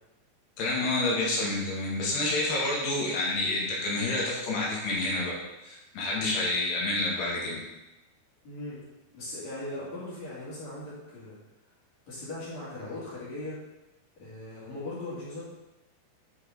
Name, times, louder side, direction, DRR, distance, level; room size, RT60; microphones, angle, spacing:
voice 1, 0.6-7.6, left 2 dB, 70° left, -4 dB, 3.8 m, -29 dB
voice 2, 8.4-8.8 9.1-11.4 12.1-13.6 14.2-15.4, left 2 dB, 45° left, -9 dB, 3.3 m, -39 dB
9.9 x 5.7 x 4.0 m, 1.0 s
omnidirectional pair, 5.1 m